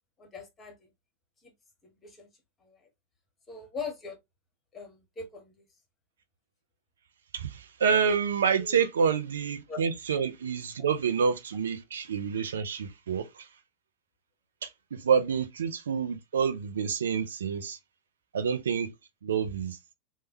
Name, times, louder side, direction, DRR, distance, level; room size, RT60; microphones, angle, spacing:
voice 1, 0.2-0.7 2.0-2.3 2.7-2.8 3.5-4.1 4.7-5.5 8.6-8.9 9.7-9.8, left 4 dB, 20° left, 1.0 m, -40 dB
voice 2, 7.3-13.5 14.6-17.8 18.3-18.9 19.2-19.8, right 6 dB, 65° right, 0.4 m, -28 dB
3.2 x 2.2 x 2.9 m
figure-of-eight pair, 90°, 0 cm